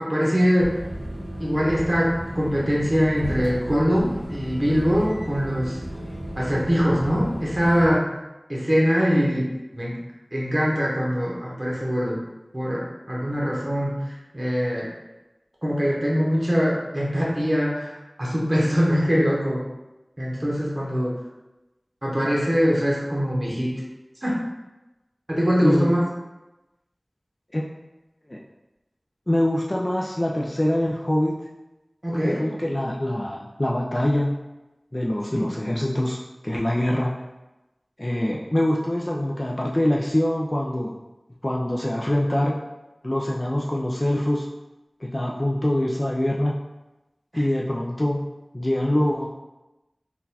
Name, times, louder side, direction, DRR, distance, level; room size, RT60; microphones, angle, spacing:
voice 1, 0.1-0.8 1.4-5.8 6.4-8.1 8.5-10.0 10.3-12.2 12.5-14.9 15.6-17.9 18.2-19.6 20.2-21.2 22.0-23.8 24.2-24.4 25.3-26.0 32.0-32.4 35.3-35.5 47.3-47.4, equal, 35° right, -5 dB, 0.9 m, -23 dB
sound 1, 0.6-8.0, equal, 80° left, 0.9 m, -34 dB
voice 2, 29.3-31.4 32.2-34.3 34.9-36.2 36.4-37.1 38.0-40.9 41.4-42.6 43.0-44.5 45.0-46.6 47.3-48.2 48.5-49.3, left 1 dB, 35° left, -2 dB, 0.3 m, -24 dB
3.8 x 2.3 x 2.7 m, 1.0 s
wide cardioid pair, 40°, 0 cm